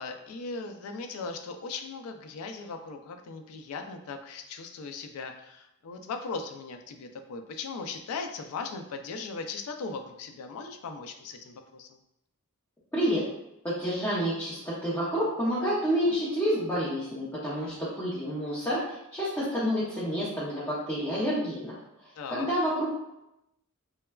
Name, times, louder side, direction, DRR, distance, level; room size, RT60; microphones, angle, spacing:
voice 1, 0.0-11.9 17.6-17.8 22.2-22.5, left 4 dB, 85° left, 6 dB, 0.4 m, -38 dB
voice 2, 12.9-13.3 13.6-21.8 22.3-22.9, equal, 10° left, -10 dB, 0.6 m, -29 dB
3.1 x 2.2 x 2.2 m, 0.85 s
head